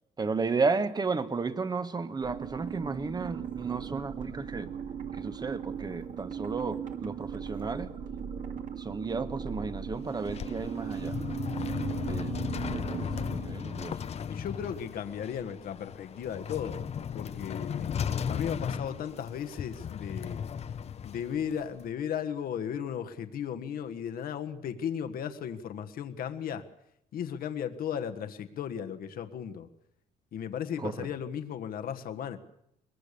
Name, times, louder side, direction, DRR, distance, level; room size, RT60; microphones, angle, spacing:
voice 1, 0.2-4.7 5.1-7.9 8.8-11.2 12.0-12.4 12.7-14.0 30.8-31.1, right 4 dB, 25° right, 11 dB, 1.4 m, -33 dB
sound 1, 2.2-13.9, right 7 dB, 50° right, 2.3 m, -38 dB
sound 2, 10.0-21.9, left 7 dB, 40° left, 0.9 m, -36 dB
voice 2, 14.3-16.8 17.1-17.9 18.3-20.4 21.0-26.7 27.1-29.7 30.3-32.4, left 8 dB, 60° left, 7 dB, 1.6 m, -35 dB
22.5 x 20.5 x 6.9 m, 0.76 s
cardioid pair, 110°, 17 cm